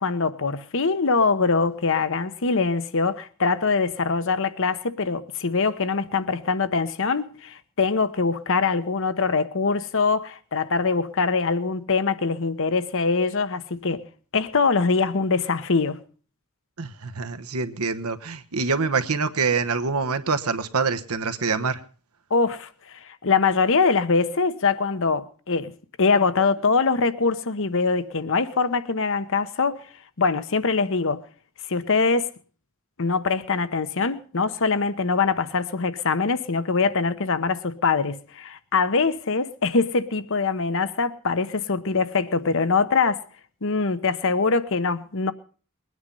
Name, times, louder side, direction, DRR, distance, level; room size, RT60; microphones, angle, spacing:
voice 1, 0.0-14.0 14.3-16.0 22.3-25.7 26.0-29.8 30.2-31.2 31.7-32.3 33.0-43.2 43.6-45.3, left 4 dB, 60° left, 1.0 m, -23 dB
voice 2, 16.8-21.8, right 4 dB, 80° right, 1.1 m, -25 dB
21.0 x 9.6 x 5.4 m
head